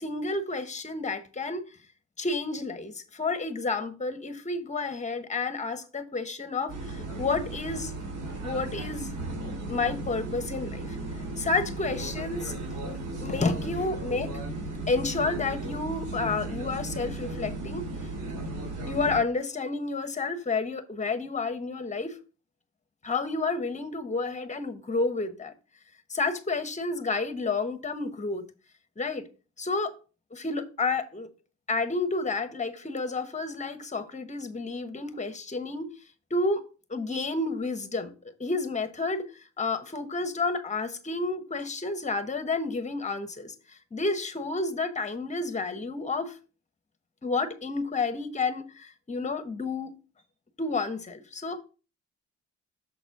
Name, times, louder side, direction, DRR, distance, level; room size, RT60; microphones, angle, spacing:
voice 1, 0.0-1.6 2.2-7.9 8.4-11.0 11.4-14.3 14.9-17.9 18.9-22.2 23.0-25.5 26.1-28.4 29.0-29.2 29.6-29.9 30.3-31.3 31.7-35.9 36.3-36.6 36.9-38.1 38.4-46.4 47.2-49.9 50.6-51.6, left 3 dB, 25° left, 1.1 m, -30 dB
sound 1, 6.7-19.2, right 2 dB, 80° right, 3.8 m, -35 dB
7.0 x 4.1 x 4.7 m
cardioid pair, 90°, 30 cm